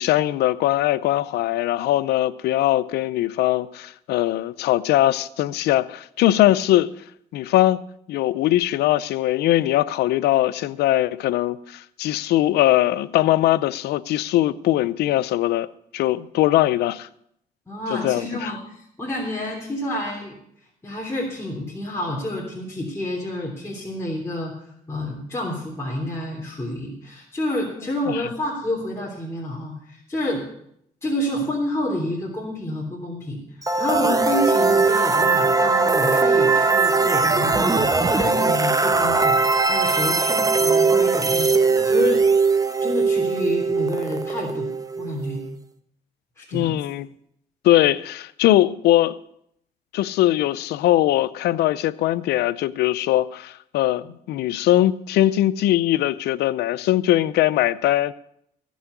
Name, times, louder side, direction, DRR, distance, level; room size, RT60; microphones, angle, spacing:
voice 1, 0.0-6.9 7.3-7.8 8.1-15.7 15.9-17.1 17.9-18.5 28.1-28.3 46.5-47.1 47.6-49.1 49.9-58.1, left 14 dB, 85° left, 0.5 m, -21 dB
voice 2, 17.7-20.3 20.8-30.5 31.0-33.4 33.8-37.9 38.2-42.2 42.8-44.7 45.0-45.4 46.4-46.8, left 1 dB, 15° left, 3.3 m, -29 dB
sound 1, 33.6-45.5, right 4 dB, 20° right, 0.9 m, -20 dB
15.5 x 6.3 x 8.3 m
cardioid pair, 75°, 17 cm